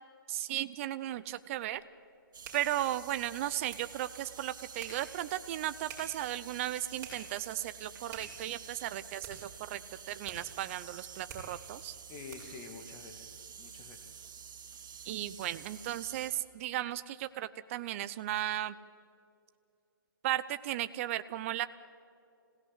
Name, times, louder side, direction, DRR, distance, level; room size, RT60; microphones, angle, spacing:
voice 1, 0.3-1.8 2.5-9.8 10.1-11.9 15.0-18.8 20.2-21.7, right 13 dB, 40° right, 13 dB, 0.8 m, -35 dB
sound 1, 1.1-12.7, right 5 dB, 25° right, 6.9 m, -53 dB
sound 2, 2.3-16.3, right 7 dB, 60° right, 2.9 m, -49 dB
voice 2, 12.1-14.3, left 5 dB, 25° left, 5 dB, 2.2 m, -49 dB
26.0 x 17.0 x 9.8 m, 2.6 s
hypercardioid pair, 135°, 11 cm